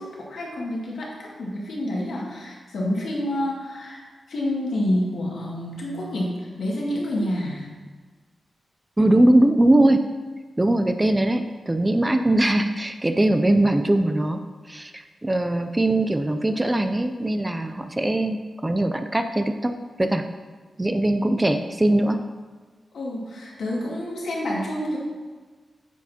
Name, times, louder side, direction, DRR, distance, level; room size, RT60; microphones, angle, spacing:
voice 1, 0.0-7.7 22.9-25.0, left 1 dB, 70° left, -4 dB, 2.0 m, -28 dB
voice 2, 9.0-10.1 10.6-14.4 14.7-19.7 20.0-20.2 20.8-22.2, right 1 dB, 15° right, 7 dB, 0.3 m, -21 dB
9.1 x 6.7 x 2.8 m, 1.4 s
wide cardioid pair, 175°, 0 cm